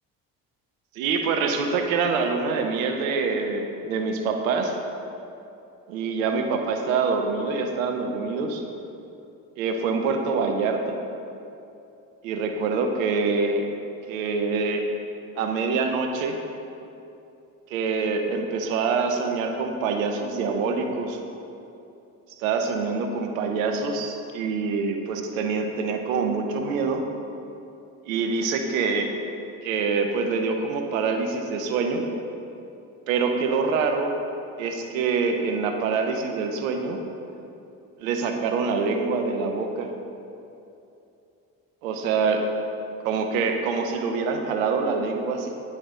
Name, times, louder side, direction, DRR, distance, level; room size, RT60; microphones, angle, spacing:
voice 1, 0.9-4.8 5.9-8.6 9.6-11.0 12.2-13.7 14.1-14.8 15.4-16.4 17.7-21.2 22.4-27.0 28.1-29.1 29.6-32.0 33.1-34.1 34.6-37.0 38.0-39.9 41.8-42.5 43.0-45.6, right 4 dB, 90° right, 5 dB, 0.9 m, -25 dB
9.7 x 9.6 x 3.8 m, 2.8 s
hypercardioid pair, 55°, 39 cm